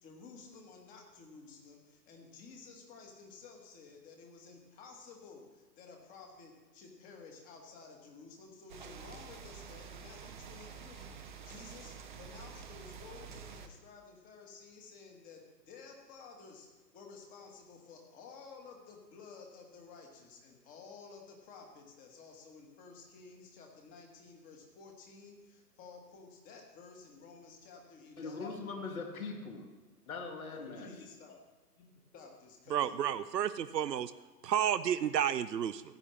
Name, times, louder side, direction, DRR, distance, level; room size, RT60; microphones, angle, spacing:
voice 1, 0.0-16.7 16.9-28.5 30.5-31.4 31.8-33.0 33.8-33.9, left 4 dB, 15° left, 1 dB, 1.4 m, -53 dB
sound 1, 8.7-13.7, right 6 dB, 30° right, 0.6 m, -48 dB
voice 2, 28.2-29.7 30.1-31.1, left 4 dB, 55° left, 2 dB, 2.1 m, -41 dB
voice 3, 32.7-34.1 34.4-35.8, right 9 dB, 75° right, 14 dB, 0.6 m, -31 dB
15.0 x 9.7 x 3.2 m, 1.2 s
figure-of-eight pair, 130°, 50 cm